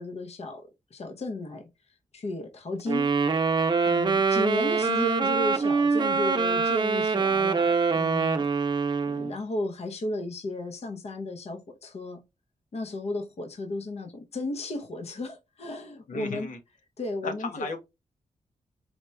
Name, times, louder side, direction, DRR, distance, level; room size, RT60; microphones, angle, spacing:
voice 1, 0.0-1.7 2.1-3.1 3.9-8.5 9.1-12.2 12.7-16.5 17.0-17.7, left 2 dB, 50° left, 0.9 m, -34 dB
Wind instrument woodwind instrument, 2.9-9.3, right 4 dB, 35° right, 0.6 m, -24 dB
voice 2, 16.1-16.6 17.2-17.8, left 3 dB, 85° left, 1.3 m, -35 dB
4.3 x 2.9 x 3.3 m
cardioid pair, 90°, 13 cm